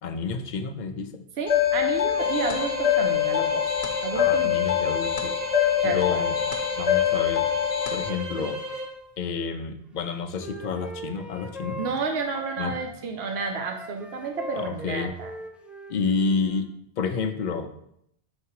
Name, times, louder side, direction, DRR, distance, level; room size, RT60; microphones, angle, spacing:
voice 1, 0.0-1.2 4.1-5.4 5.8-6.4 6.8-7.5 7.9-8.6 9.2-11.8 12.6-12.8 14.5-15.1 15.9-16.7 17.0-17.7, left 5 dB, 55° left, 7 dB, 0.6 m, -29 dB
voice 2, 1.4-3.7 4.0-4.6 5.8-6.2 11.8-15.3, right 4 dB, 85° right, 4 dB, 1.0 m, -31 dB
sound 1, 1.5-8.1, left 10 dB, 75° left, 1.0 m, -24 dB
sound 2, 2.1-9.0, equal, 50° right, 1.5 m, -33 dB
Wind instrument woodwind instrument, 10.0-12.9 13.2-16.7, left 1 dB, ahead, 0.4 m, -40 dB
6.4 x 3.4 x 4.7 m, 0.72 s
omnidirectional pair, 1.1 m